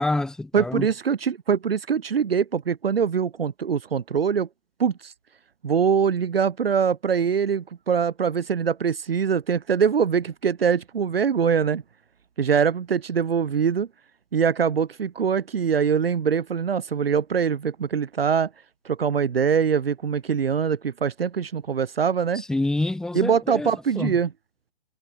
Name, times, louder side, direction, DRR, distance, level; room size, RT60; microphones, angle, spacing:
voice 1, 0.0-0.9 22.5-23.7 24.0-24.2, left 2 dB, ahead, 0.9 m, -26 dB
voice 2, 0.5-4.5 4.8-5.1 5.6-11.8 12.4-13.9 14.3-18.5 18.8-22.4 23.1-24.3, right 7 dB, 65° right, 2.3 m, -23 dB
figure-of-eight pair, 130°, 32 cm